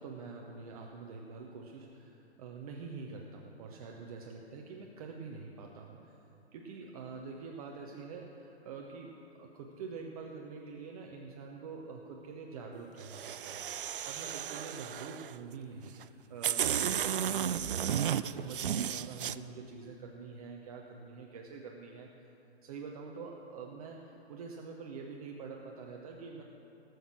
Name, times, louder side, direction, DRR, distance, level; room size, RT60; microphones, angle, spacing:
voice 1, 0.0-6.2 6.5-22.1 22.6-26.4, right 4 dB, 35° right, 0 dB, 0.9 m, -46 dB
sound 1, 13.0-15.3 16.0-16.1 16.4-19.3, right 9 dB, 55° right, 0.4 m, -33 dB
18.5 x 6.5 x 6.2 m, 3.0 s
figure-of-eight pair, 125°, 33 cm